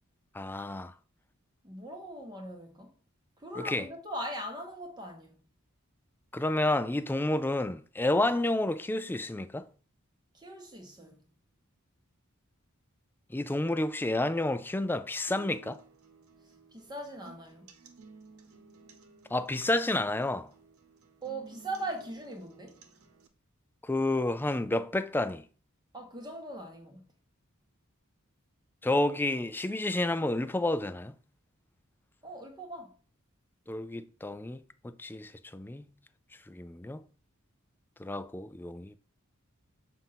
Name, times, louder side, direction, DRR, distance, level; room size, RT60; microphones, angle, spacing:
voice 1, 0.3-0.9 3.6-3.9 6.3-9.7 13.3-15.8 19.3-20.5 23.8-25.4 28.8-31.1 33.7-35.9 36.5-37.0 38.0-39.0, left 2 dB, 10° left, 0.3 m, -30 dB
voice 2, 1.6-2.9 3.4-5.4 10.3-11.3 16.7-17.7 21.2-22.8 25.9-27.1 32.2-32.9, right 1 dB, 20° right, 1.3 m, -40 dB
sound 1, 15.3-23.3, right 5 dB, 90° right, 0.9 m, -55 dB
7.1 x 2.6 x 5.7 m
head